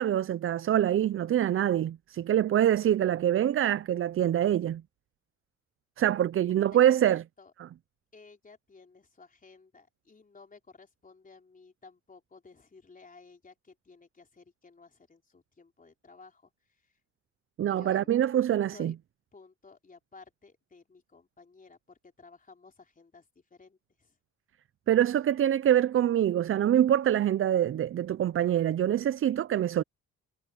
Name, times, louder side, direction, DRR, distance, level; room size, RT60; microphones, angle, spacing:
voice 1, 0.0-4.8 6.0-7.2 17.6-18.9 24.9-29.8, right 11 dB, 45° right, 0.5 m, -25 dB
voice 2, 6.5-7.5 8.1-16.9 17.7-18.1 18.7-19.0 19.3-24.2, left 4 dB, 25° left, 3.9 m, -55 dB
cardioid pair, 90°, 30 cm